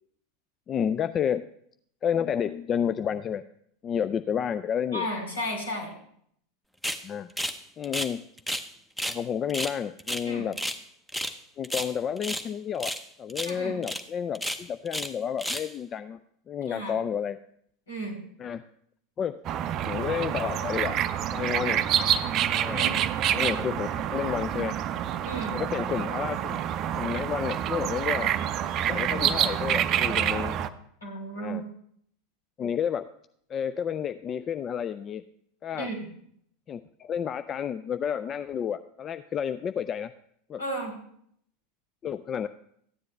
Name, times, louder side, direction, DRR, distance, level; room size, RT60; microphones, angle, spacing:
voice 1, 0.7-1.5 2.0-3.4 3.8-5.1 7.0-7.3 7.8-8.2 9.0-10.6 11.6-12.9 13.2-16.2 16.5-17.4 18.4-18.6 19.2-19.4 19.7-21.9 22.5-22.9 23.3-24.8 25.5-26.6 27.0-28.3 28.9-30.5 31.4-31.6 32.6-33.1 33.5-35.2 35.6-35.9 36.7-40.1 40.5-40.6 42.0-42.5, left 8 dB, 30° left, 11 dB, 0.3 m, -30 dB
voice 2, 4.9-5.9 10.2-10.5 13.4-13.8 16.7-16.9 17.9-18.2 22.7-23.0 25.2-25.6 31.0-31.6 35.8-36.0 40.6-40.9, equal, 75° left, 2 dB, 3.2 m, -33 dB
sound 1, 6.8-7.0 7.4-7.6 7.8-8.7 9.0-9.2 9.5-10.8 11.1-11.4 11.6-12.5 12.8-13.0 13.3-13.5 13.8-14.0 14.3-15.1 15.4-15.7, equal, 5° left, 0.7 m, -32 dB
sound 2, 19.4-30.7, right 10 dB, 40° right, 0.5 m, -27 dB
14.0 x 9.7 x 3.2 m, 0.67 s
figure-of-eight pair, 85°, 0 cm